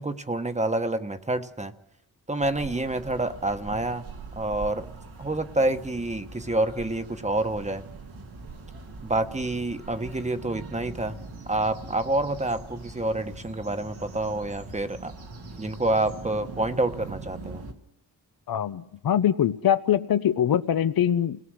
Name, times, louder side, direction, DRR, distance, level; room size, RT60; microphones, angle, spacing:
voice 1, 0.0-1.7 2.3-4.0 4.3-4.9 5.2-7.8 9.0-11.2 11.5-15.1 15.6-17.6, right 2 dB, 20° right, 9 dB, 1.2 m, -28 dB
sound 1, 2.4-17.7, right 3 dB, 85° right, 2.4 m, -42 dB
voice 2, 18.5-21.4, left 10 dB, 70° left, 11 dB, 0.8 m, -23 dB
29.0 x 18.5 x 6.4 m, 0.94 s
cardioid pair, 80°, 37 cm